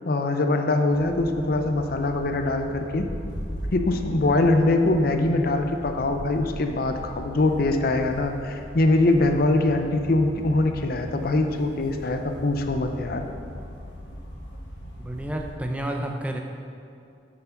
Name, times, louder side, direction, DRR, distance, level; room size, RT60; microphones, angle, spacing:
voice 1, 0.0-3.1 3.7-13.2, left 2 dB, 55° left, 6 dB, 0.6 m, -23 dB
sound 1, 0.9-15.5, equal, 85° left, 1.9 m, -39 dB
voice 2, 15.0-16.4, right 1 dB, 10° right, 2 dB, 0.6 m, -30 dB
7.3 x 7.0 x 5.8 m, 2.5 s
head